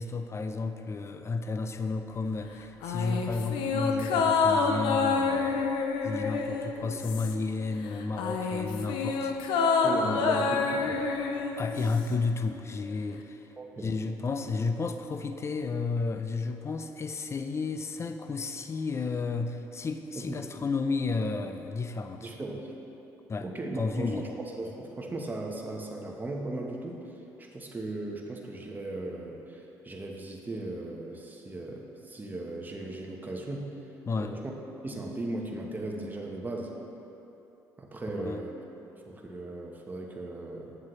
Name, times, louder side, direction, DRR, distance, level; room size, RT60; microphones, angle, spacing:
voice 1, 0.0-5.7 6.0-10.4 11.6-13.5 13.8-22.3 23.3-23.5 23.8-24.3 34.1-34.4 38.1-38.4, left 4 dB, 35° left, 8 dB, 0.5 m, -32 dB
sound 1, 2.8-7.6 7.9-12.2 12.5-12.6, left 4 dB, 80° left, 0.5 m, -28 dB
voice 2, 9.8-11.0 13.6-13.9 20.2-20.4 22.2-22.7 23.4-24.2 24.6-27.0 27.4-33.8 34.2-34.4 34.8-36.7 37.8-38.5 39.1-40.8, right 2 dB, 20° right, 0 dB, 1.0 m, -37 dB
7.6 x 7.3 x 3.1 m, 2.9 s
supercardioid pair, 70°, 8 cm